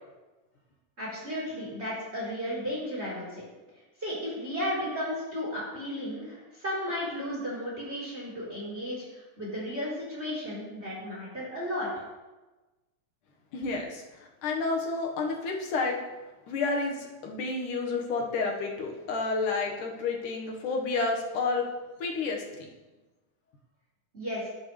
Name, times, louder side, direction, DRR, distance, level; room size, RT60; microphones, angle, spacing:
voice 1, 1.0-3.4 4.0-11.9 24.1-24.5, equal, 20° right, -6 dB, 3.8 m, -34 dB
voice 2, 13.5-16.0 16.5-21.7 22.0-22.7, left 3 dB, 80° left, 1 dB, 2.9 m, -30 dB
18.5 x 8.0 x 3.3 m, 1.2 s
omnidirectional pair, 3.6 m